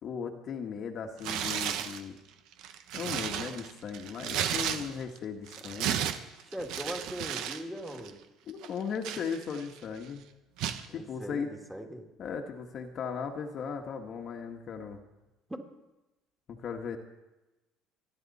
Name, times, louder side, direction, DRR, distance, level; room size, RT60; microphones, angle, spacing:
voice 1, 0.0-2.2 2.9-6.0 8.5-10.2 10.9-11.5 12.2-15.0 16.5-17.0, left 6 dB, 45° left, 3 dB, 1.4 m, -37 dB
Tearing, 1.2-2.0 2.5-5.2 5.5-7.6 7.9-8.1 8.6-9.8 10.6-10.9, right 9 dB, 70° right, 1.1 m, -34 dB
voice 2, 6.4-8.2 10.9-12.1 15.5-15.6, equal, 5° right, 2 dB, 2.3 m, -40 dB
28.0 x 10.5 x 4.2 m, 1.0 s
cardioid pair, 125°, 0 cm